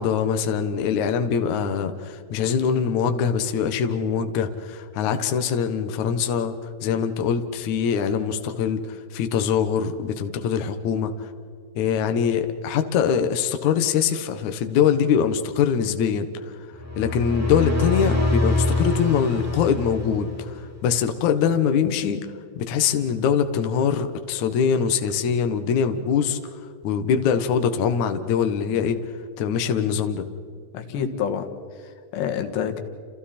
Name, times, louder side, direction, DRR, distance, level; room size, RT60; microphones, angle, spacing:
voice 1, 0.0-6.6 6.8-11.3 11.8-16.3 17.0-22.3 22.6-26.4 26.8-29.0 29.4-30.3, left 7 dB, 90° left, 7 dB, 1.6 m, -23 dB
sound 1, 16.7-20.6, left 2 dB, 10° right, 0.8 m, -25 dB
voice 2, 30.7-32.8, left 8 dB, 70° left, 6 dB, 3.4 m, -29 dB
30.0 x 29.0 x 4.3 m, 2.2 s
omnidirectional pair, 5.5 m